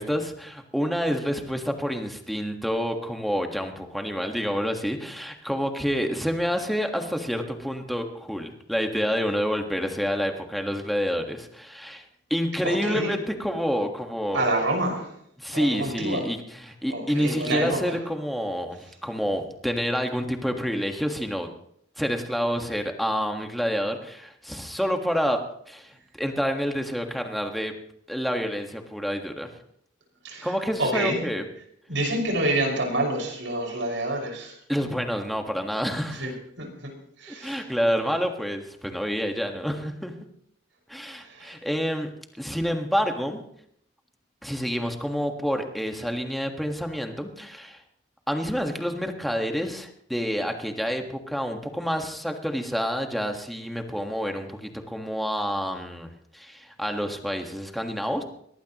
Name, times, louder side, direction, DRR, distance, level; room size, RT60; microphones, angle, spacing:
voice 1, 0.0-12.0 12.3-14.4 15.4-21.5 22.0-25.4 25.7-25.9 26.2-27.7 28.1-29.5 30.4-31.4 34.7-36.3 37.4-40.1 40.9-42.1 42.4-43.4 44.4-47.8 48.3-58.2, equal, ahead, 3 dB, 1.6 m, -28 dB
voice 2, 12.6-13.2 14.3-15.1 15.5-16.2 16.9-17.9 30.2-30.5 30.8-31.2 31.9-34.6 36.1-36.9 37.2-37.7 41.2-41.6, right 1 dB, 85° right, 1 dB, 5.8 m, -28 dB
22.5 x 19.0 x 3.0 m, 0.71 s
head